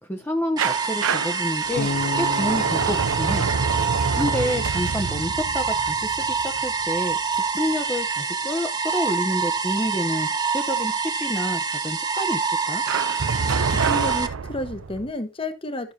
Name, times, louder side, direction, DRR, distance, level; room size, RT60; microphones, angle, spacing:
voice 1, 0.0-1.9 2.1-3.5 4.1-12.4 12.7-12.8, left 1 dB, 10° left, 0.9 m, -29 dB
sound 1, 0.6-14.3, right 5 dB, 20° right, 1.2 m, -26 dB
sound 2, 0.6-7.4 12.9-15.1, right 5 dB, 80° right, 0.6 m, -27 dB
Bass guitar, 1.8-4.8, left 3 dB, 80° left, 0.8 m, -33 dB
voice 2, 13.4-15.9, left 1 dB, 25° left, 1.2 m, -31 dB
13.5 x 6.6 x 2.8 m
head